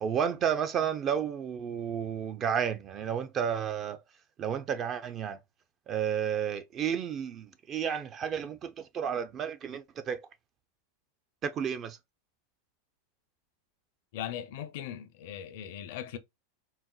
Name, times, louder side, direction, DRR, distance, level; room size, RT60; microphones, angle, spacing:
voice 1, 0.0-4.0 4.4-5.4 5.9-10.3 11.4-12.0, right 8 dB, 35° right, 0.4 m, -32 dB
voice 2, 14.1-16.2, left 10 dB, 65° left, 0.5 m, -39 dB
4.0 x 2.0 x 2.3 m
hypercardioid pair, 115°, 0 cm